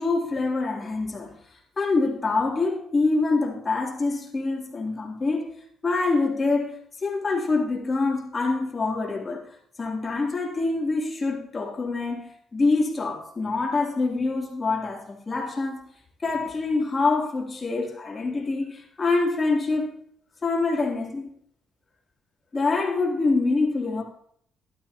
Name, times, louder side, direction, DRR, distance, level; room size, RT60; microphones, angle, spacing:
voice 1, 0.0-1.4 1.8-5.5 5.8-9.4 9.8-15.9 16.2-20.0 20.4-21.3 22.5-24.0, left 3 dB, 30° left, 3.1 m, -25 dB
15.5 x 12.5 x 2.9 m
cardioid pair, 90°, 0 cm